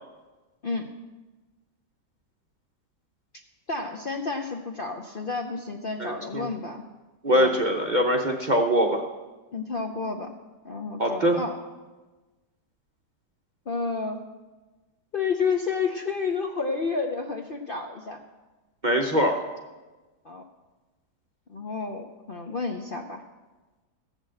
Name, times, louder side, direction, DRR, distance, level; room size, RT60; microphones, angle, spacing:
voice 1, 3.7-6.8 7.3-7.6 9.5-10.3 10.6-11.5 13.7-14.2 15.1-18.2 20.2-20.4 21.5-23.2, left 4 dB, 50° left, 3 dB, 0.7 m, -30 dB
voice 2, 6.0-6.4 7.2-9.0 11.0-11.4 18.8-19.4, equal, 40° right, 1 dB, 0.7 m, -22 dB
14.5 x 6.5 x 7.6 m, 1.2 s
omnidirectional pair, 1.8 m